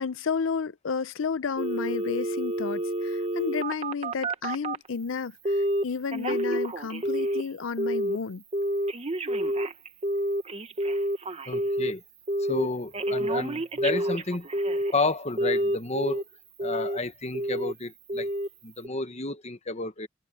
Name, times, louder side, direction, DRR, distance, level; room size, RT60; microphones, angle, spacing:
voice 1, 0.0-8.4, left 5 dB, 80° left, 0.6 m, -32 dB
Telephone, 1.6-4.9 5.5-5.8 6.1-7.5 7.8-8.2 8.5-11.9 12.3-12.7 12.9-15.0 15.4-16.2 16.6-17.0 17.3-17.7 18.1-18.5 18.8-18.9, right 1 dB, 30° right, 1.2 m, -28 dB
voice 2, 11.5-12.0 12.4-14.5 14.7-16.2 16.6-18.3 18.6-20.1, left 3 dB, 35° left, 1.2 m, -31 dB
head